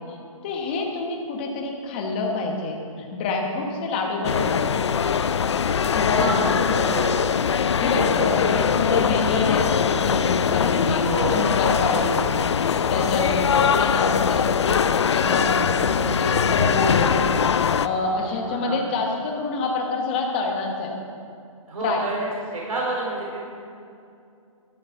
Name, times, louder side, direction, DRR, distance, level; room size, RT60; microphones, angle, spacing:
voice 1, 0.4-4.8 5.9-6.9 7.8-12.2 12.9-14.6 15.1-17.2 17.5-20.9 21.8-22.0, left 3 dB, 15° left, 1 dB, 1.0 m, -27 dB
sound 1, 4.2-17.9, left 7 dB, 55° left, 0.4 m, -22 dB
voice 2, 6.1-7.2 10.9-11.4 18.2-18.8 21.7-23.4, right 2 dB, 75° right, -3 dB, 3.1 m, -29 dB
12.0 x 7.7 x 6.9 m, 2.5 s
hypercardioid pair, 175°, 18 cm